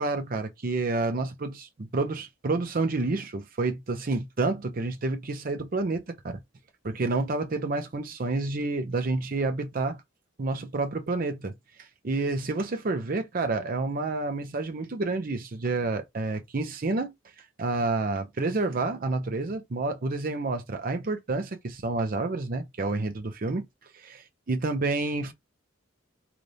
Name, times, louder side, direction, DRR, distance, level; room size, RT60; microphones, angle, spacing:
voice 1, 0.0-6.4 6.8-10.0 10.4-11.5 11.8-17.1 17.6-23.7 23.9-25.3, right 3 dB, 45° right, 0.6 m, -29 dB
4.0 x 2.4 x 3.3 m
head